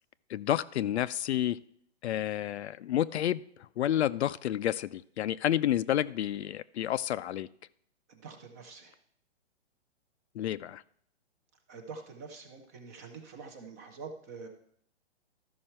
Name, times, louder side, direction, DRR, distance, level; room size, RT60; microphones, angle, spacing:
voice 1, 0.3-1.6 2.0-7.5 10.3-10.8, left 11 dB, 70° left, 16 dB, 0.5 m, -30 dB
voice 2, 8.1-8.9 11.7-14.5, right 4 dB, 15° right, 5 dB, 0.4 m, -46 dB
13.0 x 5.6 x 4.4 m, 0.67 s
hypercardioid pair, 155°, 34 cm